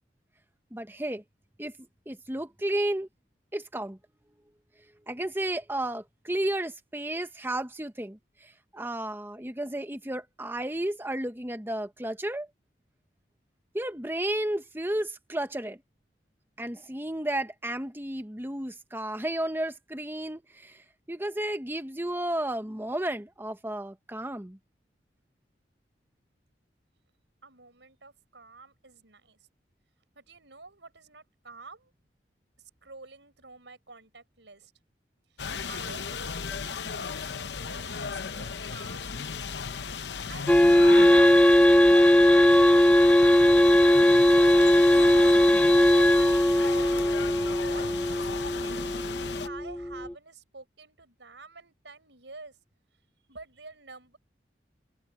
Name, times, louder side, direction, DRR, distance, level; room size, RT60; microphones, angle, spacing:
voice 1, 0.7-1.2 1.6-1.7 2.1-3.1 3.5-4.0 5.1-12.5 13.7-15.8 16.6-20.8 21.1-24.6, right 1 dB, 10° right, 1.2 m, -32 dB
voice 2, 27.4-29.4 30.2-31.9 32.8-34.7 35.3-39.6 40.3-41.6 42.4-44.1 44.4-47.0 47.6-48.9 49.4-52.6 53.3-54.2, right 3 dB, 90° right, 5.7 m, -49 dB
sound 1, 35.4-49.5, left 5 dB, 75° left, 0.8 m, -35 dB
sound 2, 40.5-50.1, left 1 dB, 5° left, 0.3 m, -19 dB
head